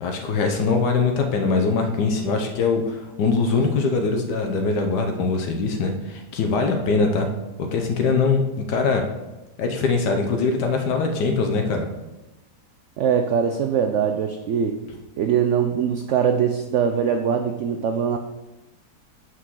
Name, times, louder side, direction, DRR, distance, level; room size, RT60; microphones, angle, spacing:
voice 1, 0.0-7.3 7.6-9.0 9.6-11.9, left 4 dB, 80° left, 4 dB, 1.4 m, -22 dB
voice 2, 13.0-14.8 15.2-18.2, right 7 dB, 80° right, 5 dB, 0.6 m, -22 dB
5.9 x 4.8 x 6.2 m, 1.0 s
omnidirectional pair, 1.8 m